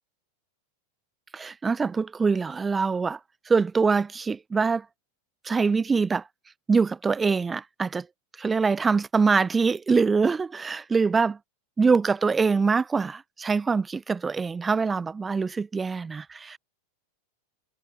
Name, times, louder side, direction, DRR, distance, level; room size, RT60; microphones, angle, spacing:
voice 1, 1.3-3.2 3.5-4.8 5.4-6.2 6.7-8.1 8.4-11.4 11.8-16.6, right 4 dB, 15° right, 4.4 m, -24 dB
figure-of-eight pair, 90°, 0 cm